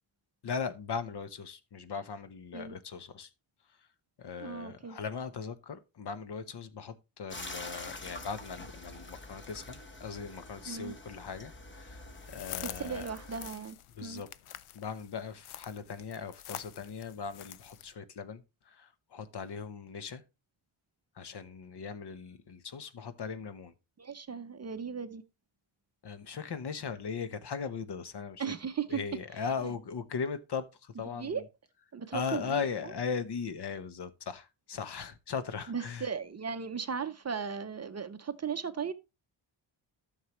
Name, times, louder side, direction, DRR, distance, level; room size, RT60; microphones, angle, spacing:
voice 1, 0.4-3.3 4.2-13.1 14.0-14.3 14.7-20.2 21.1-23.7 26.0-28.4 28.9-31.4 32.1-36.1, left 6 dB, 55° left, 1.0 m, -38 dB
voice 2, 4.4-5.0 10.7-10.9 12.6-14.2 24.0-25.2 28.4-29.0 29.6-29.7 31.1-31.4 31.9-32.7 35.7-38.9, right 6 dB, 35° right, 0.6 m, -37 dB
sound 1, 7.3-13.5, left 2 dB, 25° left, 1.1 m, -46 dB
sound 2, 12.1-17.9, left 12 dB, 90° left, 0.6 m, -47 dB
13.0 x 6.6 x 3.0 m
wide cardioid pair, 150°, 48 cm